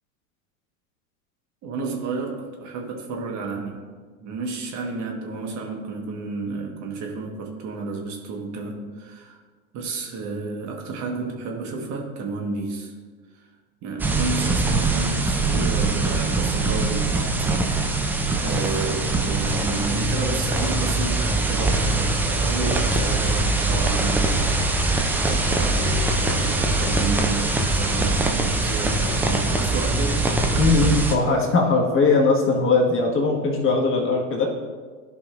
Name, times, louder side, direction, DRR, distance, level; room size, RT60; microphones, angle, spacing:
voice 1, 1.6-3.9 4.2-9.4 9.7-12.9 13.3-13.5 13.8-18.0 18.4-30.2, right 4 dB, 40° right, 1 dB, 1.4 m, -31 dB
sound 1, 14.0-31.1, right 2 dB, 5° right, 0.3 m, -22 dB
voice 2, 30.6-34.5, left 3 dB, 30° left, -1 dB, 1.6 m, -20 dB
13.0 x 5.3 x 2.5 m, 1.5 s
hypercardioid pair, 100°, 43 cm